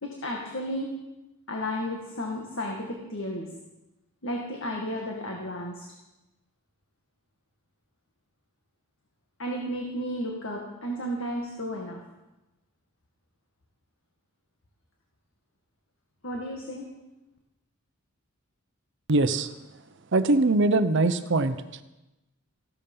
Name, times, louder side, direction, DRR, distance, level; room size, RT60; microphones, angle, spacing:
voice 1, 0.0-0.9 1.5-3.5 4.2-5.9 9.4-12.0 16.2-16.9, equal, 60° left, 0 dB, 2.0 m, -33 dB
voice 2, 19.1-19.5 20.1-21.6, right 2 dB, 55° right, 11 dB, 0.8 m, -22 dB
15.0 x 12.5 x 5.5 m, 1.0 s
head